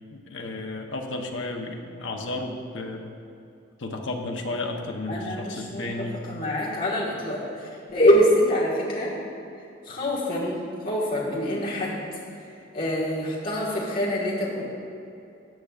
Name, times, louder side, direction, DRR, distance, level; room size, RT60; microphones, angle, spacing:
voice 1, 0.1-3.1 3.8-6.2, left 2 dB, 80° left, 3 dB, 0.8 m, -33 dB
voice 2, 5.1-9.1 9.8-12.0 12.7-14.6, equal, 45° left, -6 dB, 1.5 m, -25 dB
13.5 x 7.3 x 2.4 m, 2.6 s
head